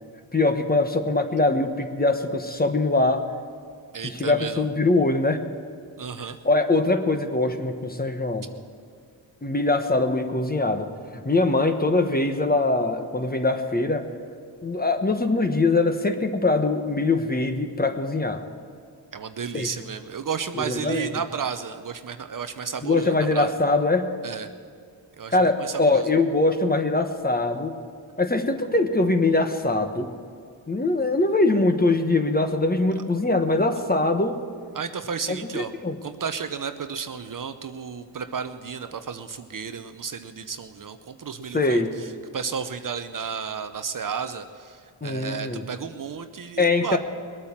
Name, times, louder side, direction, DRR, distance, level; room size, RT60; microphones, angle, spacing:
voice 1, 0.3-3.2 4.2-5.4 6.4-8.5 9.4-14.1 14.6-18.4 19.5-19.7 20.6-21.1 22.8-24.0 25.3-27.7 28.2-30.1 30.7-34.4 35.3-36.0 41.5-42.0 45.0-45.6 46.6-47.0, left 2 dB, 20° left, 7 dB, 1.2 m, -22 dB
voice 2, 3.9-4.6 6.0-6.4 19.1-23.5 24.2-24.5 25.2-26.1 34.7-35.7 36.0-47.0, right 6 dB, 45° right, 9 dB, 0.8 m, -33 dB
20.5 x 8.8 x 7.3 m, 2.1 s
cardioid pair, 75°, 46 cm